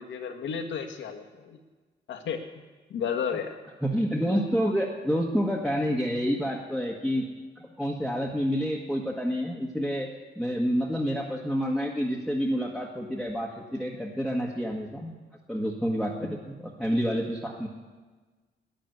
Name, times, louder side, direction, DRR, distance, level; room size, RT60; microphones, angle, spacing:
voice 1, 0.0-1.6 2.1-2.4 2.9-3.5, left 7 dB, 70° left, 4 dB, 1.7 m, -32 dB
voice 2, 3.8-7.3 7.6-10.1 10.3-15.1 15.5-16.5 16.8-17.7, equal, ahead, -2 dB, 1.6 m, -28 dB
10.5 x 10.5 x 9.4 m, 1.3 s
cardioid pair, 90°, 20 cm